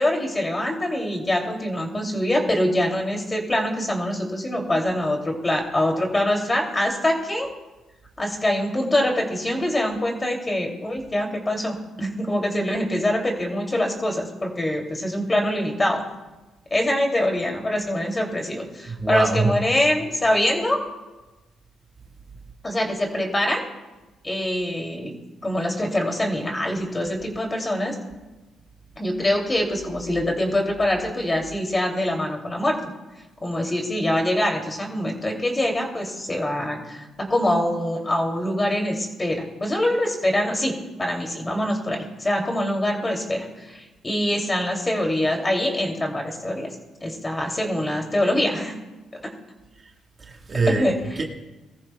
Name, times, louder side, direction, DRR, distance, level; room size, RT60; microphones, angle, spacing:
voice 1, 0.0-7.5 8.2-16.0 16.7-20.8 22.6-23.6 24.2-25.1 25.4-28.0 29.0-32.9 33.4-46.7 47.0-48.7 49.1-49.2 50.7-50.9, left 1 dB, 20° left, 1 dB, 2.5 m, -24 dB
voice 2, 18.9-19.6 50.3-51.2, right 3 dB, 35° right, 2 dB, 1.5 m, -24 dB
20.5 x 14.0 x 2.2 m, 1.1 s
cardioid pair, 90°, 0 cm